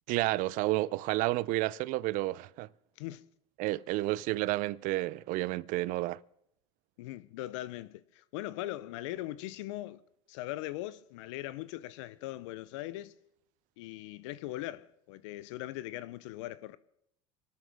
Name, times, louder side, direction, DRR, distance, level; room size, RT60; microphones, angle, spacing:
voice 1, 0.1-2.7 3.6-6.2, right 18 dB, 60° right, 0.4 m, -31 dB
voice 2, 7.0-10.0 10.3-13.1 13.8-16.8, left 16 dB, 80° left, 0.7 m, -40 dB
26.5 x 12.5 x 3.5 m
hypercardioid pair, 85°, 15 cm